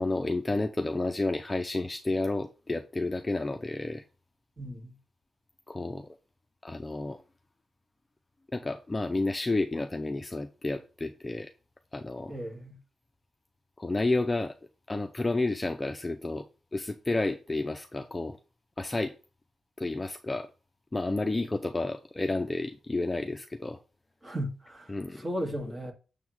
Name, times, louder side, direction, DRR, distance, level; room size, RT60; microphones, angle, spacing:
voice 1, 0.0-4.0 5.7-6.2 6.6-7.2 8.5-11.5 11.9-12.4 13.8-14.5 14.9-16.5 16.7-18.4 18.8-19.1 19.8-20.5 20.9-23.8 24.9-25.2, left 2 dB, 15° left, 0.6 m, -31 dB
voice 2, 4.6-4.9 12.3-12.8 24.2-25.9, equal, 20° right, 2.1 m, -36 dB
7.1 x 3.7 x 6.1 m
wide cardioid pair, 135°, 0 cm